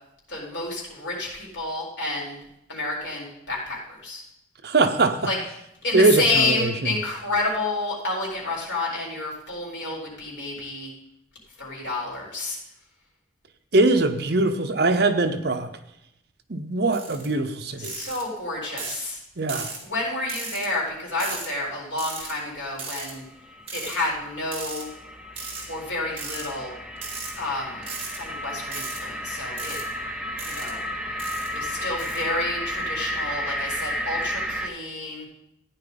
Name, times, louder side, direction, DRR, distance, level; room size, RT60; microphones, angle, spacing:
voice 1, 0.3-2.4 2.7-4.2 5.3-5.4 5.8-10.9 11.6-12.6 17.8-19.2 19.8-23.2 23.7-24.9 25.7-26.7 27.4-27.9 28.1-29.8 30.4-30.8 31.5-35.3, left 2 dB, 75° left, -4 dB, 4.2 m, -29 dB
voice 2, 4.6-5.3 5.9-6.9 13.7-15.7 16.5-17.9 19.4-19.7, right 2 dB, 60° right, 7 dB, 0.9 m, -21 dB
sound 1, 16.9-17.3 17.8-18.2 18.8-19.0 19.5-19.8 20.3-20.7 21.2-21.5 22.0-22.3 22.8-23.1 23.7-24.0 24.5-24.8 25.4-25.7 26.2-26.5 27.0-27.3 27.8-28.2 28.7-29.0 29.6-29.8 30.4-30.7 31.2-31.5 32.0-32.2, right 4 dB, 30° right, 2.5 m, -35 dB
sound 2, 23.1-34.7, equal, 5° right, 0.7 m, -33 dB
14.5 x 9.9 x 4.0 m, 0.82 s
head